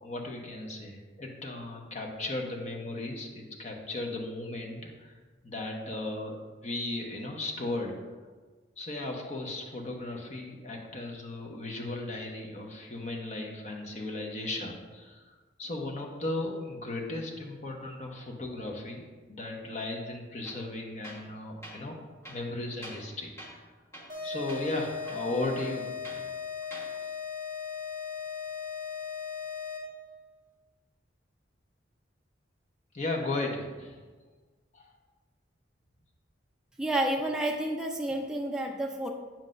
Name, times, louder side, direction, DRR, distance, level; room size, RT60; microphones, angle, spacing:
voice 1, 0.0-5.1 5.4-8.0 8.8-23.3 24.2-25.9 26.2-26.3 32.9-34.0 34.7-34.9, left 2 dB, 35° left, 1 dB, 0.9 m, -36 dB
Tools, 20.4-20.7 21.0-21.3 21.6-21.8 22.2-23.1 23.4-23.6 23.9-24.2 24.5-24.6 25.0-26.2 26.6-26.9, equal, 15° left, 1.4 m, -46 dB
sound 1, 24.1-30.1, left 6 dB, 20° right, 2.1 m, -37 dB
voice 2, 36.8-39.1, right 1 dB, 5° right, 0 dB, 0.5 m, -30 dB
8.8 x 7.5 x 2.6 m, 1.3 s
head